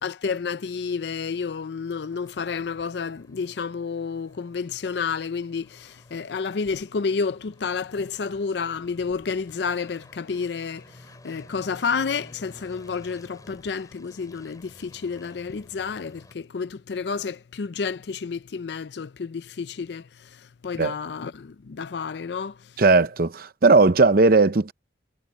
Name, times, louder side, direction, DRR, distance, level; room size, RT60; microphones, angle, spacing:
voice 1, 0.0-22.6, left 5 dB, 65° left, 0.5 m, -30 dB
sound 1, 1.3-16.3, left 1 dB, 20° left, 7.9 m, -53 dB
voice 2, 22.8-24.7, right 3 dB, 50° right, 0.7 m, -17 dB
head